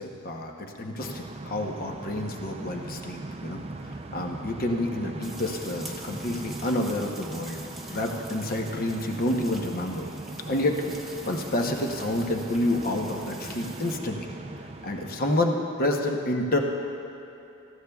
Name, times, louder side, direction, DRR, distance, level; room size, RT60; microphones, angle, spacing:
voice 1, 0.0-7.6 7.9-10.1 10.5-10.8 11.3-14.3 14.8-16.6, left 1 dB, 40° left, 2 dB, 0.9 m, -29 dB
sound 1, 1.0-15.2, right 2 dB, 30° right, 0.5 m, -40 dB
sound 2, 5.2-13.9, right 1 dB, ahead, 1.0 m, -46 dB
18.5 x 14.5 x 2.4 m, 3.0 s
head